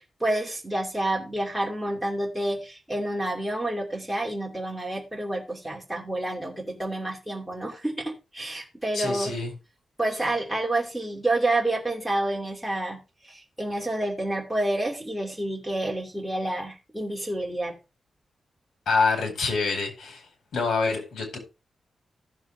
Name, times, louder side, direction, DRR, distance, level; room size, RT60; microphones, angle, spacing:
voice 1, 0.2-9.3 10.0-17.7, right 1 dB, ahead, 2.6 m, -29 dB
voice 2, 8.9-9.5 18.9-20.2 20.5-21.4, left 4 dB, 80° left, 4.5 m, -26 dB
15.0 x 7.1 x 3.4 m
wide cardioid pair, 150°, 0 cm